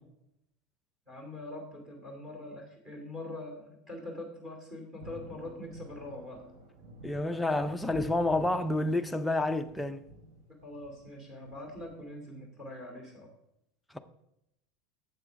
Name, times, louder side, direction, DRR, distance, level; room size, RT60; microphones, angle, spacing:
voice 1, 1.1-6.5 10.6-13.3, left 1 dB, 15° right, 2.4 m, -43 dB
Thunder, 5.0-12.0, right 1 dB, 65° right, 2.5 m, -50 dB
voice 2, 7.0-10.1 13.9-14.0, left 2 dB, 5° left, 0.4 m, -29 dB
8.2 x 7.4 x 5.1 m
supercardioid pair, 170°, 0 cm